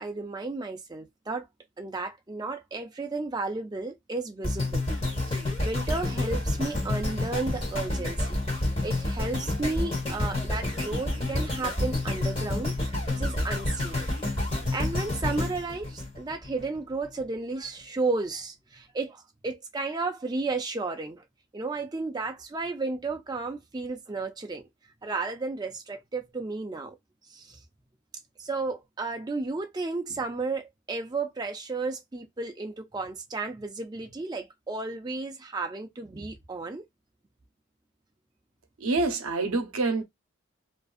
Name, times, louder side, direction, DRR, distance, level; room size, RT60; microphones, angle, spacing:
voice 1, 0.0-1.5 1.8-4.8 5.3-14.0 14.7-21.2 21.5-24.7 25.0-27.0 27.3-27.6 28.4-36.8, right 3 dB, 20° right, 0.4 m, -33 dB
sound 1, 4.4-16.6 17.2-17.3, left 2 dB, 25° left, 1.2 m, -29 dB
voice 2, 38.8-40.0, right 3 dB, 80° right, 0.6 m, -26 dB
2.5 x 2.2 x 2.4 m
head